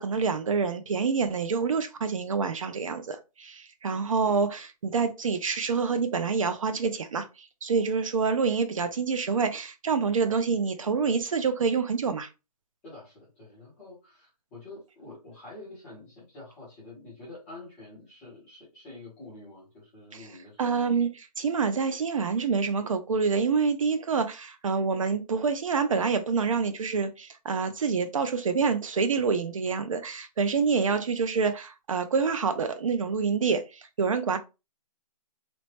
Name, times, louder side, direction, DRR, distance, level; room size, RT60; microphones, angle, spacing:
voice 1, 0.0-12.3 20.6-34.4, right 5 dB, 55° right, 0.4 m, -27 dB
voice 2, 12.8-20.9, left 2 dB, 5° left, 0.4 m, -47 dB
2.9 x 2.0 x 3.0 m
hypercardioid pair, 170°, 20 cm